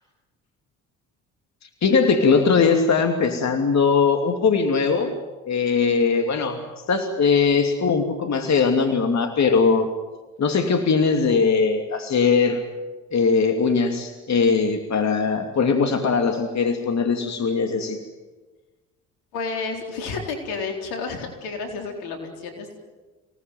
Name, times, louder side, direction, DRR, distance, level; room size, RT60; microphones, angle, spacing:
voice 1, 1.8-5.1 5.5-6.6 6.9-9.9 10.4-12.6 13.1-18.0, left 5 dB, 45° left, 5 dB, 2.8 m, -20 dB
voice 2, 19.3-22.8, left 4 dB, 80° left, 4 dB, 4.2 m, -31 dB
26.0 x 18.5 x 9.4 m, 1.3 s
hypercardioid pair, 55°, 37 cm